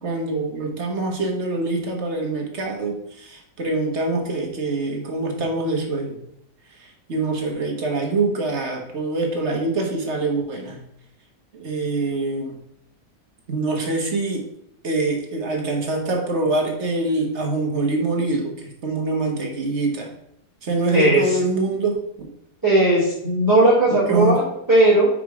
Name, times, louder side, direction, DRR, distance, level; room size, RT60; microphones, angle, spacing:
voice 1, 0.0-6.2 6.8-10.8 11.5-12.6 13.5-14.5 14.8-20.1 20.6-22.3 24.1-24.4, right 2 dB, 45° right, 1 dB, 1.4 m, -24 dB
voice 2, 20.9-21.4 22.6-25.1, right 2 dB, 10° right, -12 dB, 2.7 m, -17 dB
5.8 x 5.0 x 4.7 m, 0.76 s
omnidirectional pair, 1.8 m